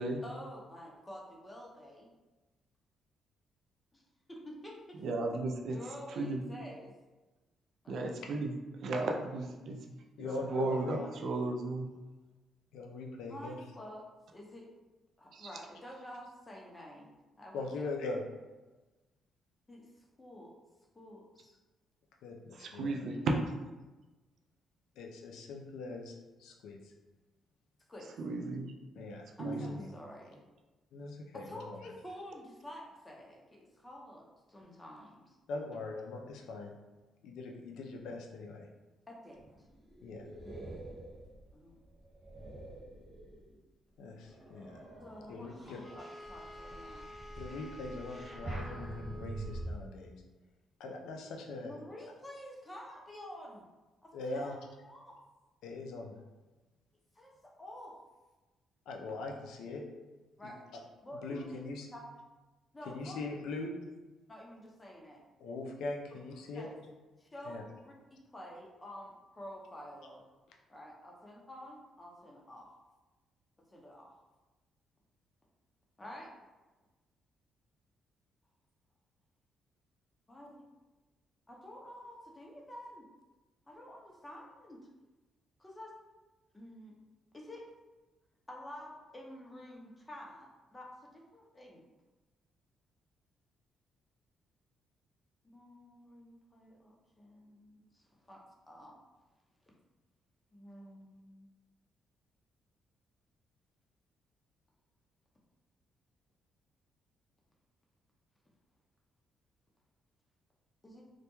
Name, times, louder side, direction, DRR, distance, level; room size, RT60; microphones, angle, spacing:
voice 1, 0.2-2.1 3.9-4.0 4.3-5.0 5.7-6.9 7.8-8.1 10.2-11.2 13.3-14.1 14.3-14.7 15.2-17.1 17.4-17.9 19.7-20.5 20.9-21.6 27.9-28.1 29.4-30.4 31.3-35.4 39.1-39.5 41.5-41.8 45.0-47.1 51.6-53.6 54.0-54.5 54.8-55.2 57.1-58.0 60.4-60.6 61.0-61.6 61.9-62.0 62.7-63.2 64.3-65.2 66.5-66.8 67.2-70.2 70.7-72.7 73.7-74.1 76.0-76.3 80.3-80.6 81.5-83.1 83.7-84.8 85.6-85.9 86.5-87.0 87.3-87.6 88.5-91.8 95.4-98.4 98.7-98.9 100.5-101.5 110.8-111.0, equal, 20° left, -2 dB, 0.6 m, -49 dB
voice 2, 5.0-5.8 6.2-6.4 7.9-8.5 8.8-9.8 10.5-11.9 15.3-15.5 22.5-23.3 28.2-28.8 29.4-29.8, right 2 dB, 65° right, 2 dB, 0.3 m, -34 dB
voice 3, 10.2-11.0 12.7-13.6 17.5-18.2 22.2-22.9 25.0-26.1 26.4-26.9 29.0-29.9 30.9-31.9 35.5-36.7 37.2-38.7 40.0-40.3 44.0-44.8 45.3-45.8 47.3-50.1 50.8-51.8 54.1-54.6 55.6-56.2 58.9-59.9 60.4-60.5 61.2-61.9 62.9-63.7 65.4-66.7 67.4-67.6, left 3 dB, 85° left, 1 dB, 0.3 m, -41 dB
sound 1, 39.3-43.6 44.1-49.7, right 2 dB, 20° right, 1.2 m, -46 dB
Wind instrument woodwind instrument, 45.8-49.8, left 1 dB, 5° right, 0.9 m, -50 dB
2.2 x 2.1 x 2.9 m, 1.2 s
cardioid pair, 90°, 0 cm